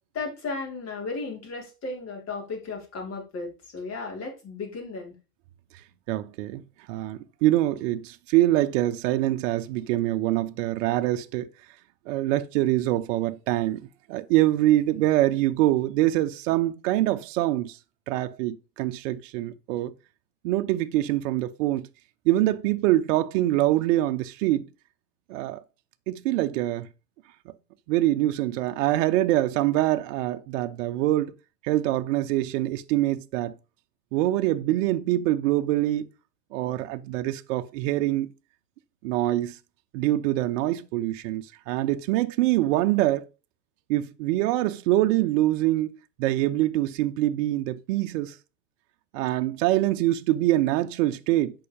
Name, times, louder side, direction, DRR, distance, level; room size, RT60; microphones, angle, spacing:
voice 1, 0.1-5.1, left 3 dB, 30° left, 5.0 m, -35 dB
voice 2, 6.1-6.6 6.9-11.5 12.1-13.8 14.1-17.8 18.1-19.9 20.4-21.9 22.2-24.7 25.3-25.6 26.1-26.9 27.9-31.3 31.6-33.5 34.1-36.1 36.5-38.3 39.0-39.6 39.9-43.2 43.9-45.9 46.2-48.3 49.1-51.5, right 15 dB, 55° right, 0.9 m, -24 dB
8.4 x 5.8 x 5.2 m
hypercardioid pair, 110°, 47 cm